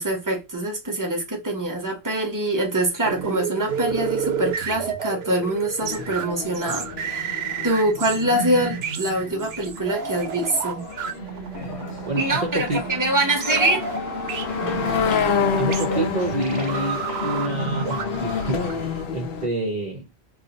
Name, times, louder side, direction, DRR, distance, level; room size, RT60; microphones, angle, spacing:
voice 1, 0.0-7.4 7.6-10.9 12.2-13.8, right 1 dB, 20° right, 0.9 m, -24 dB
sound 1, 3.0-19.1, right 6 dB, 75° right, 0.8 m, -31 dB
sound 2, 5.8-19.5, left 6 dB, 65° left, 0.8 m, -29 dB
sound 3, 11.5-18.6, left 2 dB, 35° left, 0.8 m, -38 dB
voice 2, 12.1-12.8 15.6-20.1, right 2 dB, 50° right, 0.6 m, -28 dB
2.6 x 2.4 x 3.8 m
omnidirectional pair, 1.1 m